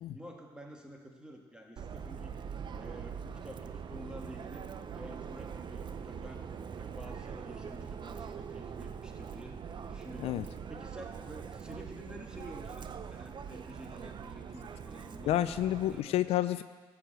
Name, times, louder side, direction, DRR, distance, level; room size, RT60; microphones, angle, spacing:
voice 1, 0.1-2.3 2.8-4.7 4.9-6.4 6.7-9.6 9.9-10.4 10.7-15.4 15.9-16.5, equal, 10° right, 1 dB, 1.8 m, -49 dB
Subway metro underground, 1.8-16.0, right 7 dB, 50° right, 0.6 m, -43 dB
voice 2, 15.3-16.6, left 13 dB, 75° left, 13 dB, 0.4 m, -29 dB
13.0 x 4.8 x 7.8 m, 1.5 s
cardioid pair, 75°, 10 cm